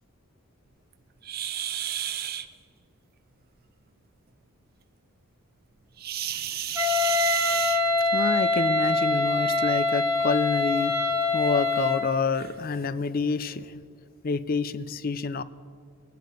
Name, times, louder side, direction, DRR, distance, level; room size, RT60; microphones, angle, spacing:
sound 1, 1.2-2.5 6.0-8.2 9.5-9.6 10.2-10.3 10.9-11.0 11.8-11.9 12.3-12.5, right 11 dB, 45° right, 0.5 m, -32 dB
Wind instrument woodwind instrument, 6.7-12.1, left 2 dB, 15° right, 1.4 m, -24 dB
voice 1, 7.5-13.8 14.2-15.4, left 4 dB, 45° left, 15 dB, 0.4 m, -28 dB
20.5 x 9.4 x 5.3 m, 2.3 s
head